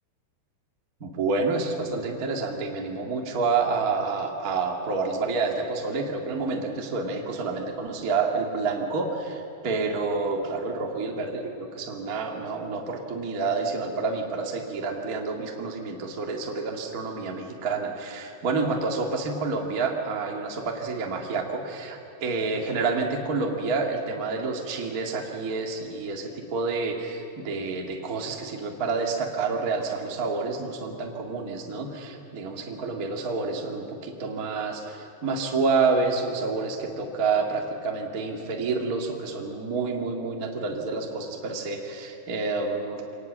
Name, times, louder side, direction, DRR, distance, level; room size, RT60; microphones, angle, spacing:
voice 1, 1.0-43.1, right 4 dB, 45° right, 1 dB, 1.1 m, -28 dB
24.5 x 18.5 x 7.5 m, 2.8 s
omnidirectional pair, 5.3 m